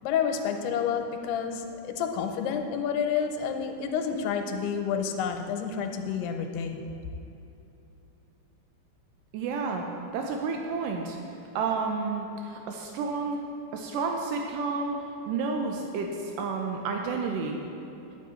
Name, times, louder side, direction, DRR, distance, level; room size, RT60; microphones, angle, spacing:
voice 1, 0.0-6.8, left 7 dB, 90° left, 5 dB, 2.7 m, -29 dB
voice 2, 9.3-9.9 10.1-11.2 11.6-13.4 13.7-17.6, right 4 dB, 85° right, 2 dB, 1.9 m, -30 dB
10.0 x 9.3 x 4.4 m, 2.9 s
omnidirectional pair, 4.6 m